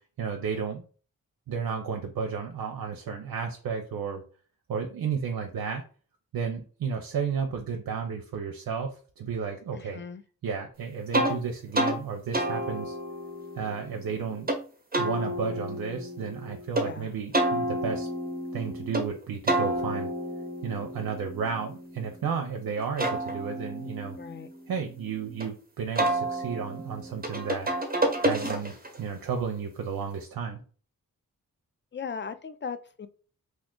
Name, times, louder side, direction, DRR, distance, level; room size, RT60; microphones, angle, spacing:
voice 1, 0.2-0.8 1.5-4.2 4.7-5.8 6.3-10.0 10.4-13.0 13.6-14.5 15.0-18.1 18.5-20.1 20.6-24.2 24.7-27.7 28.2-30.6, right 6 dB, 75° right, 3 dB, 0.6 m, -33 dB
voice 2, 9.7-10.2 16.8-17.1 24.2-24.5 31.9-33.1, left 6 dB, 30° left, 11 dB, 0.4 m, -38 dB
sound 1, 11.1-11.3 11.7-12.0 12.3-14.6 14.9-16.9 17.3-19.1 19.5-22.3 22.8-25.4 26.0-29.0, right 1 dB, 25° right, 1.0 m, -30 dB
2.5 x 2.4 x 3.7 m, 0.40 s
cardioid pair, 45°, 36 cm